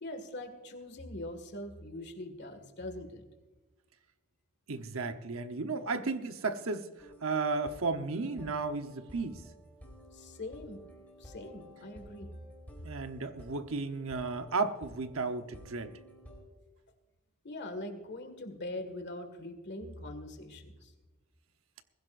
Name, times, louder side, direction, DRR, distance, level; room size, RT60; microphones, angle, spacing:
voice 1, 0.0-3.2 10.1-10.8 11.2-12.3 17.4-20.9, left 1 dB, 55° left, 1.9 m, -42 dB
voice 2, 4.7-6.9 7.2-9.4 12.8-15.9, right 3 dB, 75° right, 1.0 m, -34 dB
sound 1, 7.0-16.4, equal, 10° left, 4.1 m, -53 dB
22.0 x 15.5 x 2.6 m
head